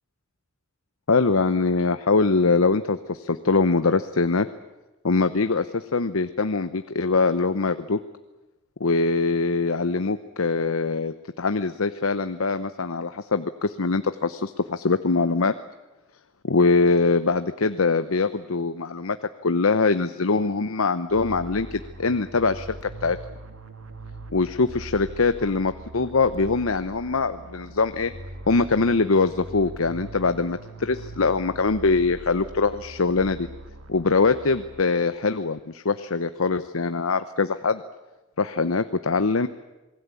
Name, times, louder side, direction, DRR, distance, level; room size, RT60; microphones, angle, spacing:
voice 1, 1.1-4.5 5.0-8.0 8.8-15.5 16.4-19.2 19.4-22.7 23.0-23.2 24.3-28.1 28.5-33.5 33.9-37.8 38.4-39.5, left 4 dB, 85° left, 11 dB, 0.9 m, -23 dB
sound 1, 21.1-35.2, right 2 dB, 85° right, 2.3 m, -41 dB
27.5 x 20.0 x 8.4 m, 1.1 s
head